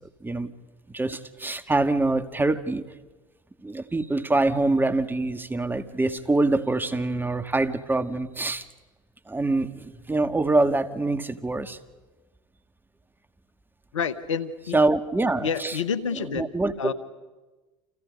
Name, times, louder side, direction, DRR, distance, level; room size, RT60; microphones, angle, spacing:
voice 1, 0.0-0.5 0.9-2.8 3.6-8.7 9.3-11.8 14.7-15.7 16.4-16.9, right 2 dB, 15° right, 9 dB, 1.7 m, -25 dB
voice 2, 13.9-14.8 15.4-16.5 16.8-16.9, left 6 dB, 85° left, 13 dB, 1.2 m, -28 dB
30.0 x 28.0 x 5.3 m, 1.2 s
hypercardioid pair, 75°, 16 cm